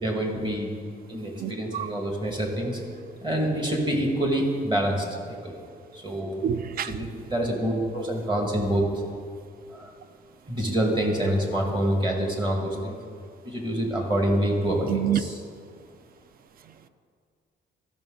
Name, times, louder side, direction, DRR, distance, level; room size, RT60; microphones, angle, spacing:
voice 1, 0.0-0.7 1.1-2.8 3.2-5.6 5.9-6.4 6.8-8.8 9.7-9.9 10.5-13.0 13.4-15.4, right 1 dB, 25° right, 2.0 m, -26 dB
voice 2, 1.4-1.9 6.4-7.0 14.9-15.2, right 10 dB, 50° right, 0.4 m, -27 dB
14.0 x 6.0 x 3.9 m
cardioid pair, 90°, 20 cm